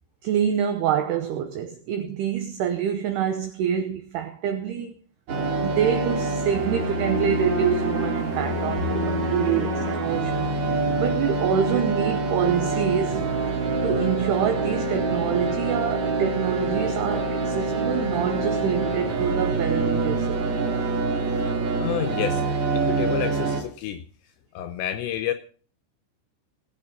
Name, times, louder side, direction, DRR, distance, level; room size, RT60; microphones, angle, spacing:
voice 1, 0.2-4.9 5.6-10.5 11.0-13.2 13.8-20.4, right 8 dB, 80° right, 2.3 m, -26 dB
sound 1, 5.3-23.6, right 3 dB, 50° right, 2.6 m, -25 dB
voice 2, 21.8-22.4 22.7-24.0 24.5-25.3, left 11 dB, 80° left, 2.7 m, -29 dB
17.5 x 7.3 x 5.5 m
omnidirectional pair, 5.6 m